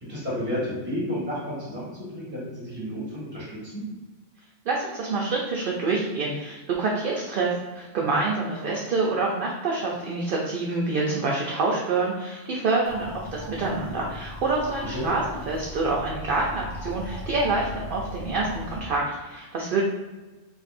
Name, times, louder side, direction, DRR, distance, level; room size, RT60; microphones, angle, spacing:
voice 1, 0.1-3.8 14.9-15.1, equal, 10° right, -8 dB, 1.4 m, -31 dB
voice 2, 4.7-19.8, right 3 dB, 60° right, -2 dB, 0.6 m, -27 dB
sound 1, 12.8-18.8, left 1 dB, 45° left, 1.0 m, -38 dB
4.2 x 2.6 x 2.5 m, 1.2 s
omnidirectional pair, 1.3 m